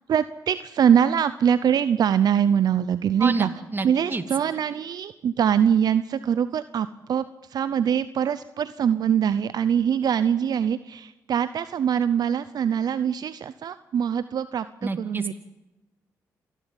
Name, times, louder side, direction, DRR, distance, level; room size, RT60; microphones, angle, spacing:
voice 1, 0.1-3.5 3.8-15.3, right 8 dB, 65° right, 14 dB, 0.7 m, -23 dB
voice 2, 3.2-4.2 14.8-15.3, right 3 dB, 30° right, 8 dB, 2.6 m, -28 dB
27.5 x 12.0 x 9.1 m, 1.0 s
supercardioid pair, 55°, 7 cm